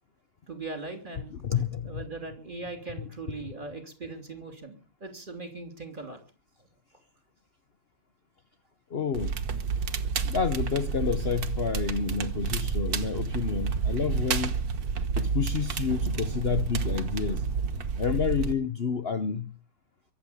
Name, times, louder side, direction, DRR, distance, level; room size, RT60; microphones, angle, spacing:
voice 1, 0.5-1.3 1.8-6.2, right 3 dB, 20° right, 3.3 m, -39 dB
voice 2, 1.4-2.0 3.4-3.5 8.9-9.3 10.2-14.5 15.2-17.4 18.0-19.5, left 6 dB, 65° left, 0.5 m, -29 dB
Crackle, 9.1-18.5, right 5 dB, 50° right, 1.6 m, -30 dB
23.5 x 8.6 x 7.1 m
omnidirectional pair, 2.3 m